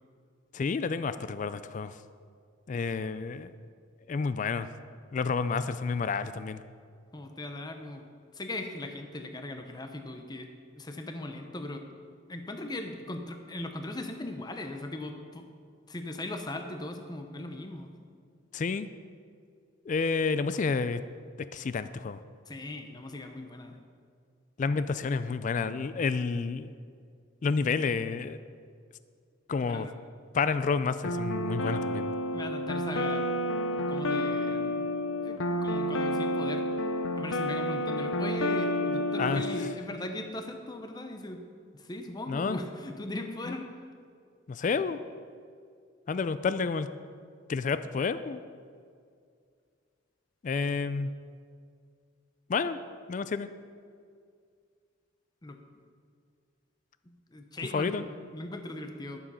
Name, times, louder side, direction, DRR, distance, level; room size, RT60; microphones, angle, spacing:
voice 1, 0.5-1.9 2.7-3.5 4.1-4.7 5.1-6.6 18.5-18.9 19.9-21.0 21.5-22.2 24.6-26.7 27.4-28.4 29.5-29.9 30.3-32.1 39.2-39.4 42.3-42.6 43.5-43.6 44.5-45.0 46.1-46.9 47.5-48.4 50.4-51.1 52.5-52.8 53.1-53.5 57.7-58.1, left 5 dB, 40° left, 13 dB, 0.3 m, -29 dB
voice 2, 7.1-8.0 8.3-10.5 10.7-11.8 12.3-15.5 15.9-17.9 22.5-23.8 29.6-29.9 32.3-33.3 33.8-34.9 35.2-36.6 37.2-41.5 41.7-43.7 55.4-55.6 57.1-59.2, left 1 dB, 20° left, 5 dB, 0.7 m, -39 dB
sound 1, 31.0-39.7, left 1 dB, 90° left, 0.6 m, -30 dB
11.5 x 7.2 x 5.5 m, 2.2 s
head